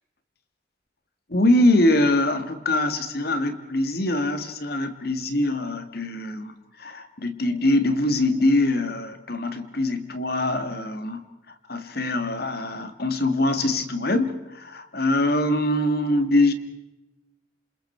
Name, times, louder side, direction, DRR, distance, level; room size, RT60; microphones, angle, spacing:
voice 1, 1.3-11.2 11.7-16.5, left 1 dB, 55° left, 9 dB, 1.9 m, -23 dB
28.0 x 27.0 x 4.6 m, 0.97 s
head